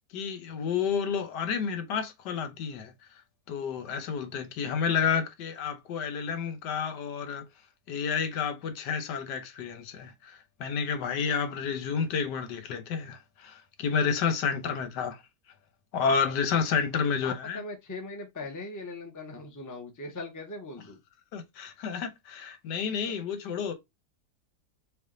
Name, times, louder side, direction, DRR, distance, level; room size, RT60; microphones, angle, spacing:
voice 1, 0.1-2.9 3.5-7.5 7.9-15.2 15.9-17.6 21.3-23.7, left 6 dB, 85° left, 1.4 m, -30 dB
voice 2, 17.2-21.0 23.0-23.1, left 2 dB, 15° left, 0.6 m, -40 dB
4.8 x 2.5 x 3.7 m
omnidirectional pair, 1.8 m